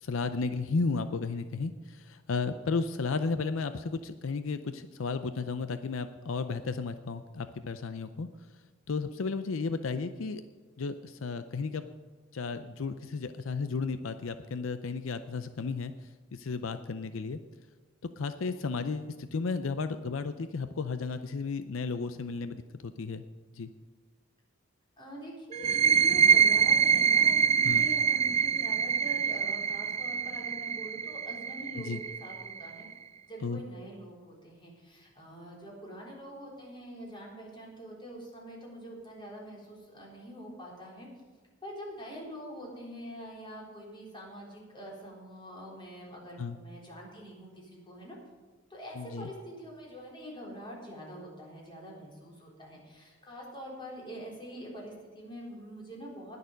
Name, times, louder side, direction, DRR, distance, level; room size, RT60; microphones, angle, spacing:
voice 1, 0.0-8.3 8.9-10.4 10.8-11.9 12.3-15.9 16.3-17.4 18.2-23.2 23.5-23.7 27.6-27.9 31.8-32.0 33.4-33.6 46.4-46.6 49.0-49.3, left 4 dB, 80° left, 10 dB, 0.5 m, -33 dB
voice 2, 25.0-32.9 33.3-41.1 41.6-48.2 48.7-56.4, equal, 25° left, -3 dB, 3.7 m, -45 dB
sound 1, 25.5-32.9, right 7 dB, 30° right, 0.4 m, -25 dB
20.0 x 6.8 x 5.2 m, 1.4 s
head